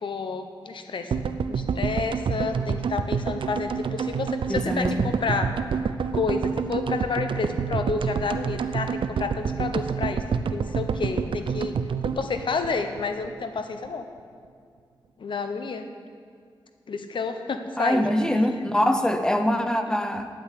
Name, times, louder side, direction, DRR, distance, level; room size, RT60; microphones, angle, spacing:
voice 1, 0.0-5.5 6.1-10.2 10.5-11.7 12.0-14.1 15.2-15.8 16.9-18.1, left 4 dB, 70° left, 7 dB, 0.9 m, -30 dB
sound 1, 1.1-13.3 13.6-13.7 13.8-13.9, right 6 dB, 80° right, 0.5 m, -28 dB
voice 2, 4.5-5.0 17.8-20.3, left 1 dB, 10° left, 7 dB, 0.7 m, -23 dB
9.9 x 8.9 x 8.2 m, 2.2 s
wide cardioid pair, 155°, 9 cm